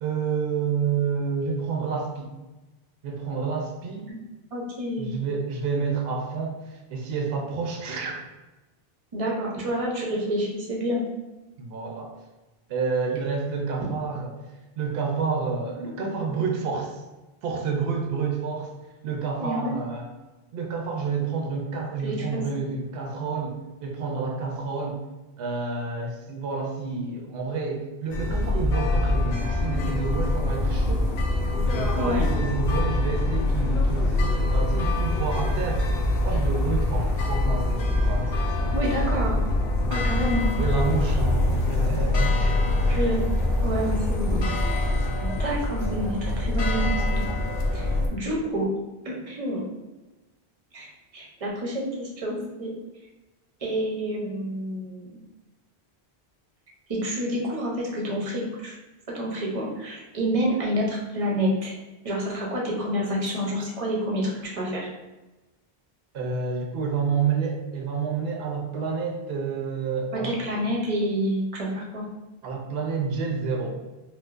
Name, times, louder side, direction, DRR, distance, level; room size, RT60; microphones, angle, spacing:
voice 1, 0.0-2.3 3.0-4.1 5.0-8.2 11.6-12.1 12.7-14.3 14.8-17.0 17.4-18.7 19.0-20.1 20.5-25.0 25.4-31.1 31.7-35.9 36.2-38.8 40.6-42.6 66.1-70.4 72.4-73.8, right 5 dB, 70° right, 1 dB, 0.8 m, -29 dB
voice 2, 4.5-5.2 9.1-11.0 19.4-19.8 22.0-22.5 32.0-32.3 38.7-39.4 39.9-40.5 42.9-43.2 43.6-44.9 45.2-47.2 47.7-48.7 49.0-49.7 50.7-52.7 53.6-55.2 56.9-58.8 59.1-61.7 62.0-64.9 70.1-72.0, equal, 40° right, -3 dB, 0.6 m, -28 dB
sound 1, 28.1-48.1, left 2 dB, 70° left, 0.8 m, -24 dB
4.5 x 2.1 x 2.4 m, 1.1 s
omnidirectional pair, 1.1 m